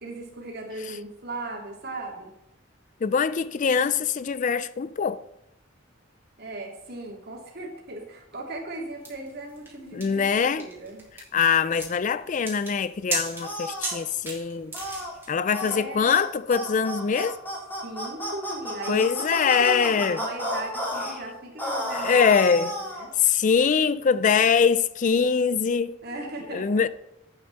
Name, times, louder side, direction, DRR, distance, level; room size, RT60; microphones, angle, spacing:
voice 1, 0.0-2.3 6.4-11.1 15.6-16.2 17.8-23.1 26.0-26.8, right 2 dB, 55° right, 2.8 m, -37 dB
voice 2, 3.0-5.2 9.9-10.6 11.3-14.7 15.3-17.4 18.9-20.2 22.0-22.7 23.2-26.0 26.5-26.9, left 6 dB, 40° left, 0.4 m, -23 dB
sound 1, 9.0-15.3, right 2 dB, 10° right, 3.3 m, -35 dB
sound 2, 13.4-14.0 14.7-15.1 15.5-15.8 16.1-16.3 16.5-21.1 21.6-23.1, equal, 10° left, 3.3 m, -32 dB
12.0 x 8.7 x 4.1 m
head